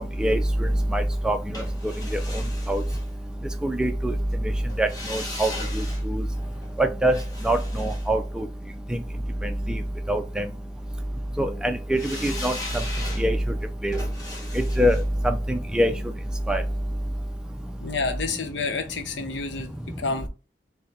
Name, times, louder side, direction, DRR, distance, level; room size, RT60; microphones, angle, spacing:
voice 1, 0.2-1.4 2.1-2.2 2.7-2.8 3.6-4.1 4.8-6.2 6.8-7.2 7.4-8.5 10.1-10.5 11.4-12.5 13.2-13.4 13.8-14.0 14.5-15.0 15.2-15.9 16.5-16.6, right 1 dB, 5° right, 0.3 m, -23 dB
sound 1, 1.5-3.7 4.7-8.9 11.9-16.9 17.2-17.3, left 2 dB, 20° left, 1.3 m, -39 dB
voice 2, 17.8-20.3, left 4 dB, 85° left, 0.7 m, -29 dB
4.6 x 2.1 x 3.3 m
head